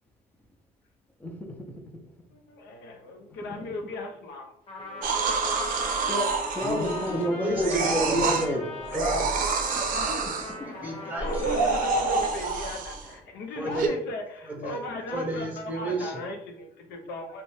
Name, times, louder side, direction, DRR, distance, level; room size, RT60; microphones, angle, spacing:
voice 1, 1.2-2.0 5.7-8.7 9.9-10.1 10.6-10.7, left 1 dB, 10° left, 3 dB, 0.4 m, -31 dB
voice 2, 2.3-4.5 11.1-17.4, left 2 dB, 80° left, 4 dB, 0.6 m, -37 dB
sound 1, 4.7-13.6, left 2 dB, 60° left, 1.0 m, -44 dB
Trumpet, 4.7-11.9, left 2 dB, 35° left, 0.9 m, -41 dB
sound 2, 5.0-7.2 7.6-8.5 8.9-10.5 11.2-13.1 13.8-13.9, right 4 dB, 55° right, 0.5 m, -27 dB
voice 3, 6.6-8.6 8.9-9.3 9.6-10.2 10.6-11.6 13.5-13.9 14.5-14.8 15.1-16.2, right 2 dB, 10° right, 1 dB, 0.8 m, -32 dB
2.6 x 2.1 x 3.1 m, 0.75 s
cardioid pair, 110°, 17 cm